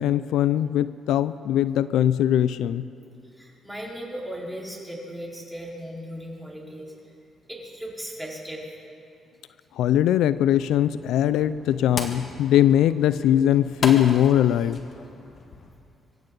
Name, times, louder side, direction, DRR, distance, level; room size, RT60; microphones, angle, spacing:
voice 1, 0.0-2.9 9.8-14.8, left 11 dB, 85° left, 15 dB, 0.4 m, -21 dB
voice 2, 3.3-6.9 7.5-8.7, equal, ahead, -4 dB, 4.0 m, -37 dB
sound 1, 10.3-15.7, left 3 dB, 50° left, 1.7 m, -37 dB
24.5 x 15.0 x 3.9 m, 2.6 s
cardioid pair, 90°, 0 cm